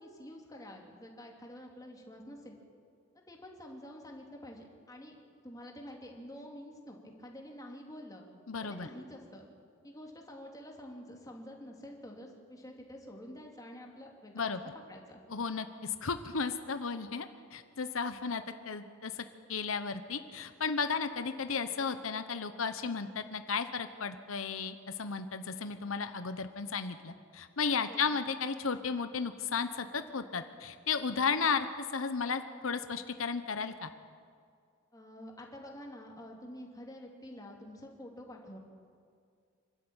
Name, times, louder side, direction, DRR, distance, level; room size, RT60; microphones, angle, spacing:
voice 1, 0.0-2.6 3.1-5.2 5.4-8.3 8.6-9.5 9.8-14.6 14.9-15.2 27.8-28.1 34.9-38.6, equal, 20° left, 0 dB, 2.9 m, -48 dB
voice 2, 8.5-8.9 14.3-14.6 15.3-33.9, left 5 dB, 90° left, 10 dB, 1.0 m, -34 dB
26.0 x 12.5 x 8.9 m, 2.2 s
head